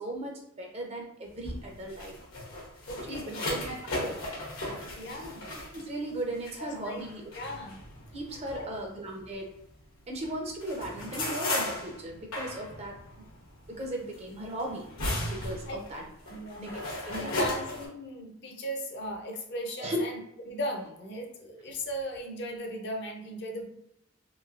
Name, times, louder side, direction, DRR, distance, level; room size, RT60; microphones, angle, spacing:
voice 1, 0.0-2.3 3.1-4.2 4.6-4.9 5.7-7.2 8.1-9.5 10.1-13.0 13.7-14.9 15.3-16.0 16.3-17.5 19.8-20.0, right 1 dB, 30° right, 0 dB, 0.5 m, -37 dB
sound 1, 1.3-9.8 10.2-17.9, left 1 dB, 85° left, 1.0 m, -36 dB
voice 2, 2.9-3.5 4.9-5.5 6.6-7.0 7.3-7.8 8.6-8.7 15.7-15.8 16.3-16.7 17.2-20.2 20.5-23.7, equal, 55° left, 3 dB, 0.5 m, -37 dB
3.1 x 2.7 x 2.4 m, 0.79 s
head